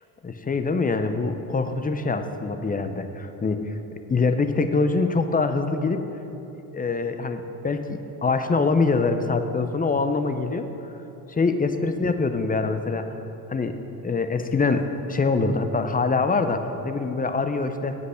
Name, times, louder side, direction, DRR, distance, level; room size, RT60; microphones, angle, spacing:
voice 1, 0.2-3.6 4.1-6.0 6.7-10.7 11.4-13.1 13.5-13.8 14.0-18.0, left 4 dB, 20° left, 8 dB, 0.6 m, -24 dB
8.1 x 8.0 x 6.5 m, 3.0 s
supercardioid pair, 80°, 47 cm